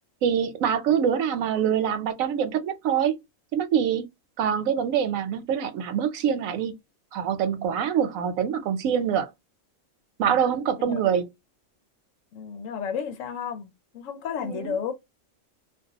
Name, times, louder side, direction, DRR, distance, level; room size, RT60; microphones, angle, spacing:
voice 1, 0.2-3.2 3.5-4.0 4.4-6.7 7.1-9.3 10.2-11.3 14.4-14.7, right 8 dB, 85° right, 1.0 m, -25 dB
voice 2, 12.3-14.9, left 7 dB, 75° left, 1.0 m, -32 dB
2.4 x 2.3 x 2.7 m
omnidirectional pair, 1.4 m